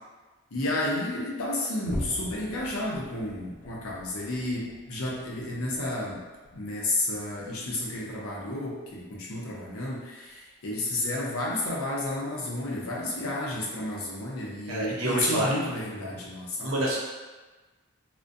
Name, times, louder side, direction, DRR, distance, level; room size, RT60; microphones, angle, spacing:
voice 1, 0.5-6.2 6.5-16.8, left 1 dB, 85° left, -4 dB, 0.6 m, -31 dB
sound 1, 1.8-8.5 8.8-9.1 9.6-9.7 10.3-10.4, left 1 dB, 40° left, 0.3 m, -43 dB
voice 2, 14.7-15.5 16.6-17.0, right 1 dB, 70° right, -5 dB, 0.7 m, -27 dB
2.4 x 2.1 x 2.5 m, 1.3 s
head